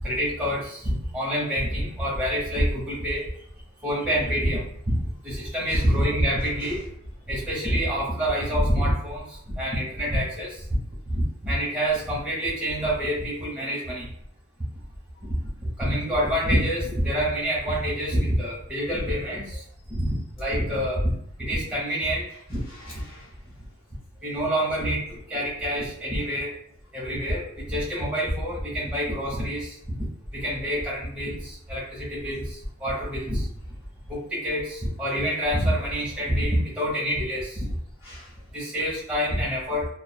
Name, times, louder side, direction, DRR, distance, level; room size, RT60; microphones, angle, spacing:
voice 1, 0.0-3.2 3.8-6.9 7.3-10.8 11.1-14.1 15.6-19.6 19.9-20.1 20.4-21.1 21.4-22.6 24.2-26.5 26.9-30.1 30.3-33.5 34.1-37.7 38.5-39.9, equal, 5° right, -6 dB, 0.9 m, -27 dB
voice 2, 6.4-6.8 12.9-13.0 15.2-15.3 19.9-20.1 22.3-23.4 38.0-38.4, left 1 dB, 70° left, -10 dB, 1.3 m, -49 dB
2.3 x 2.3 x 2.3 m, 0.67 s
head